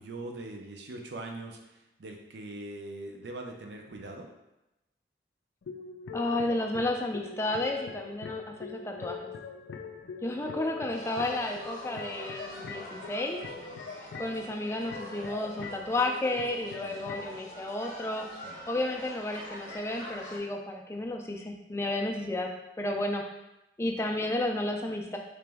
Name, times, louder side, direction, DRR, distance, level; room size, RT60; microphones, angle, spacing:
voice 1, 0.0-4.3 13.6-13.9 16.8-17.1 18.3-18.6, right 2 dB, 75° right, 2 dB, 0.5 m, -42 dB
sound 1, 5.6-17.4, left 5 dB, 90° left, 0.4 m, -43 dB
voice 2, 6.1-9.3 10.2-13.4 14.2-18.3 18.7-22.5 22.8-23.2 23.8-25.2, left 1 dB, 15° left, 2 dB, 0.3 m, -32 dB
sound 2, 10.9-20.4, equal, 45° left, 0.7 m, -45 dB
3.3 x 2.9 x 3.4 m, 0.94 s
head